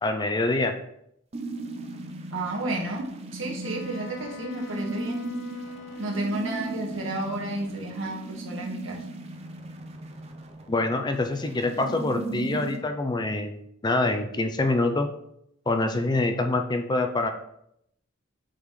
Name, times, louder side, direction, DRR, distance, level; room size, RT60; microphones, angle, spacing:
voice 1, 0.0-0.7 10.7-15.1 15.7-17.3, left 2 dB, 20° left, 6 dB, 0.5 m, -25 dB
sound 1, 1.3-12.8, right 2 dB, 30° right, 0.6 m, -37 dB
voice 2, 2.3-5.2 6.0-9.0, right 2 dB, 80° right, -1 dB, 1.5 m, -31 dB
Wind instrument woodwind instrument, 3.6-7.2, left 2 dB, 60° left, 0.7 m, -43 dB
8.4 x 3.9 x 3.2 m, 0.75 s
head